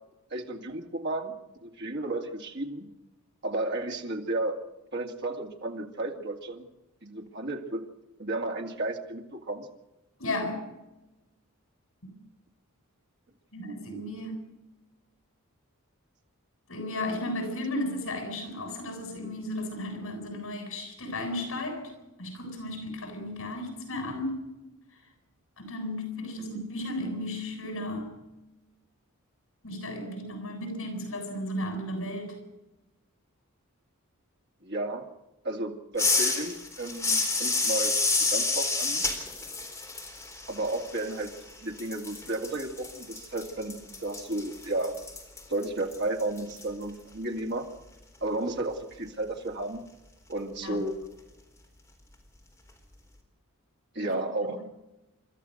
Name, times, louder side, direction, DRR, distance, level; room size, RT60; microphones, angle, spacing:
voice 1, 0.3-1.3 1.6-2.9 3.4-4.6 4.9-6.7 7.0-7.8 8.2-9.7 26.5-26.6 34.6-35.1 35.4-39.1 40.5-41.3 41.6-45.0 45.5-47.7 48.2-49.8 50.3-50.9 53.9-54.8, right 2 dB, 50° right, 2 dB, 2.4 m, -33 dB
voice 2, 10.2-10.7 12.0-12.1 13.5-14.5 16.7-21.9 22.2-24.4 25.6-28.2 29.6-32.4 50.6-50.8 54.0-54.2 54.5-54.6, left 1 dB, 70° left, 4 dB, 7.6 m, -34 dB
sound 1, 36.0-41.5 41.8-46.6, left 3 dB, 10° left, 3.9 m, -29 dB
30.0 x 13.5 x 6.6 m, 1.0 s
head